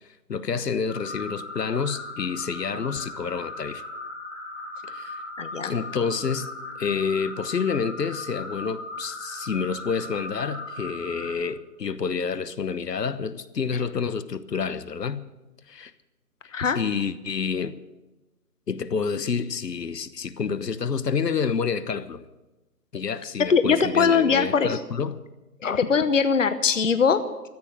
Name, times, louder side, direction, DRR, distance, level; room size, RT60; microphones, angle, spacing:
voice 1, 0.3-3.8 4.9-5.2 5.7-6.5 6.8-15.2 15.7-15.9 16.7-17.8 18.7-22.2 22.9-25.2, left 6 dB, 80° left, 1.2 m, -28 dB
sound 1, 0.9-11.3, left 2 dB, 10° left, 2.1 m, -38 dB
voice 2, 5.4-5.7 16.5-16.8 23.4-24.8 25.6-27.5, left 5 dB, 50° left, 0.9 m, -21 dB
14.5 x 8.9 x 9.0 m
hypercardioid pair, 180°, 48 cm